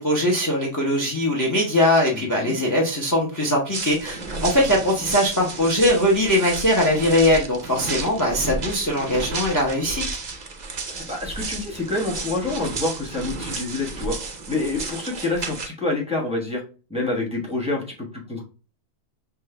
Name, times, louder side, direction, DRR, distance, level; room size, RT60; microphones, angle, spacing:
voice 1, 0.0-10.0, left 1 dB, 20° left, -1 dB, 0.6 m, -21 dB
voice 2, 2.1-2.6 4.3-4.8 10.9-14.2 14.5-16.6 16.9-18.4, left 2 dB, 5° right, -2 dB, 0.9 m, -27 dB
sound 1, 3.7-15.7, right 3 dB, 50° right, 0.5 m, -32 dB
5.7 x 2.5 x 3.3 m, 0.35 s
omnidirectional pair, 1.7 m